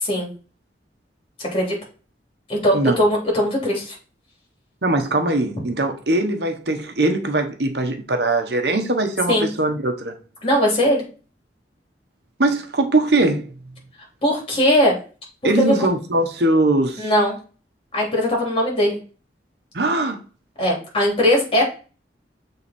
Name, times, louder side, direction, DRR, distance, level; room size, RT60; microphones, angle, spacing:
voice 1, 1.4-1.7 2.5-3.9 9.3-9.5 10.4-11.0 14.2-14.9 17.0-17.4 17.9-19.0 20.6-21.6, left 1 dB, 30° left, 3.2 m, -19 dB
voice 2, 4.8-10.2 12.4-13.5 15.4-17.1 19.7-20.2, right 2 dB, 65° right, 1.2 m, -21 dB
7.1 x 3.9 x 4.4 m
head